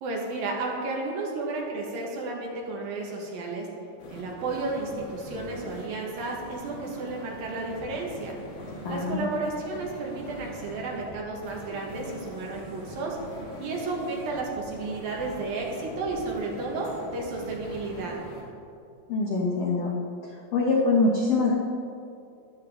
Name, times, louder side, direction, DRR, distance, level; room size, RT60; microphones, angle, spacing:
voice 1, 0.0-3.7 4.1-8.3 8.9-13.2 13.6-18.2, right 3 dB, 65° right, -1 dB, 3.2 m, -32 dB
sound 1, 4.0-18.4, left 1 dB, 75° left, 4.1 m, -43 dB
voice 2, 8.8-9.3 19.1-19.9 20.5-21.5, left 3 dB, 90° left, -2 dB, 1.3 m, -24 dB
14.5 x 11.0 x 3.8 m, 2.5 s
omnidirectional pair, 4.6 m